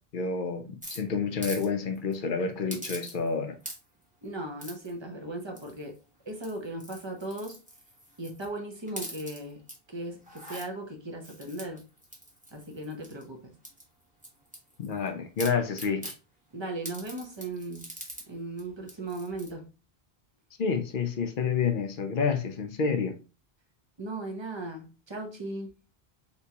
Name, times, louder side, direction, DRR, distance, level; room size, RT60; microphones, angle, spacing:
voice 1, 0.1-3.6 14.8-16.1 20.6-23.2, left 5 dB, 60° left, 0.7 m, -29 dB
sound 1, 0.8-1.7 2.0-2.1 2.7-3.3 3.6-4.0 4.6-4.9 5.6-6.0 6.3-8.5 8.9-9.8 10.2-10.7 11.2-13.2 13.6-15.1 15.4-16.2 16.8-18.3 18.6-18.7 18.9-19.5, equal, 10° right, 1.0 m, -43 dB
voice 2, 4.2-6.0 6.3-7.6 8.2-9.6 9.9-11.8 12.5-13.5 16.5-17.8 18.3-19.7 24.0-25.7, right 1 dB, 30° right, 0.7 m, -37 dB
3.5 x 2.9 x 2.7 m
omnidirectional pair, 1.0 m